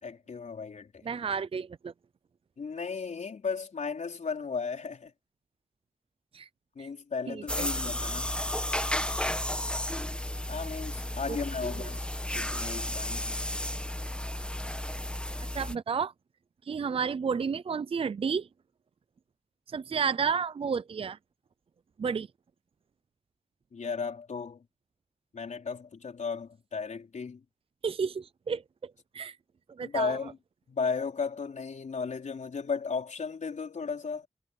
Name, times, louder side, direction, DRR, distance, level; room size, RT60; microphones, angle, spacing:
voice 1, 0.0-1.0 2.6-5.1 6.8-8.4 10.5-12.0 12.3-13.4 23.7-24.6 25.3-27.4 29.8-30.4 30.7-34.3, left 5 dB, 80° left, 4.6 m, -35 dB
voice 2, 1.0-1.9 6.3-6.5 6.8-6.9 7.3-7.7 11.3-11.4 11.6-11.9 15.5-16.1 16.7-18.5 19.7-21.2 22.0-22.3 27.8-29.4 29.8-30.2, right 6 dB, 50° right, 0.4 m, -31 dB
sound 1, 7.5-15.7, left 1 dB, 10° left, 1.2 m, -33 dB
wide cardioid pair, 125°, 12 cm